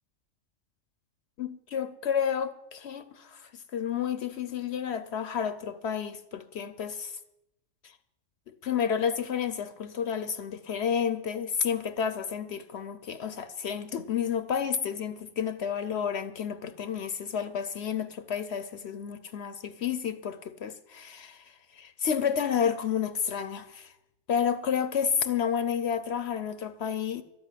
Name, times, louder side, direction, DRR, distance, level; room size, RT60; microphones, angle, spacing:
voice 1, 1.4-7.2 8.5-23.9 24.3-27.2, left 7 dB, 65° left, 0.9 m, -31 dB
13.0 x 8.0 x 9.8 m
omnidirectional pair, 1.3 m